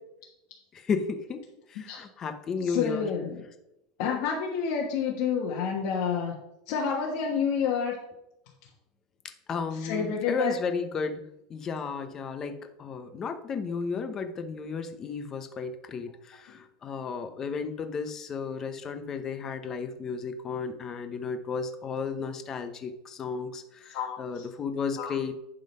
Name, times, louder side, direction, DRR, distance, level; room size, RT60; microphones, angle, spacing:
voice 1, 0.7-1.4 1.7-3.1 9.5-25.3, left 5 dB, 20° left, 8 dB, 0.7 m, -33 dB
voice 2, 2.6-3.4 4.0-6.4 6.7-8.0 9.8-10.5 23.9-24.5 25.0-25.1, left 6 dB, 50° left, -2 dB, 1.3 m, -29 dB
11.0 x 3.9 x 5.4 m, 0.86 s
supercardioid pair, 165°, 2 cm